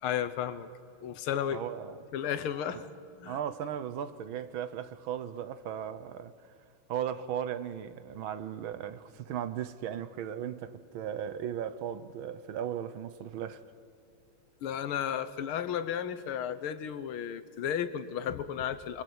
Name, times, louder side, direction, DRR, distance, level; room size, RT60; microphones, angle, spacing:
voice 1, 0.0-0.7 1.0-1.6 2.1-2.9 3.2-3.4 14.6-19.0, left 9 dB, 80° left, 1.9 m, -33 dB
voice 2, 1.5-2.0 2.7-2.8 3.2-6.3 6.9-13.6, right 9 dB, 70° right, 1.7 m, -36 dB
29.5 x 22.5 x 8.1 m
omnidirectional pair, 2.3 m